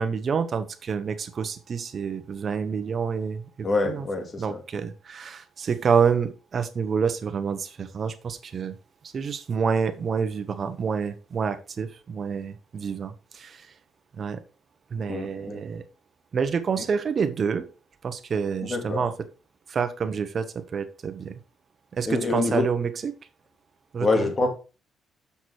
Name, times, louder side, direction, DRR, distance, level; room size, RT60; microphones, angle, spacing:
voice 1, 0.0-4.1 4.4-8.8 9.1-13.7 14.1-14.4 14.9-15.8 16.3-17.7 18.0-19.3 19.7-21.4 21.9-23.1 23.9-24.3, right 6 dB, 50° right, 1.2 m, -28 dB
voice 2, 3.6-4.6 15.1-15.6 18.7-19.0 22.1-22.7 24.0-24.5, left 3 dB, 40° left, 2.6 m, -25 dB
7.2 x 6.1 x 4.8 m
cardioid pair, 90°, 0 cm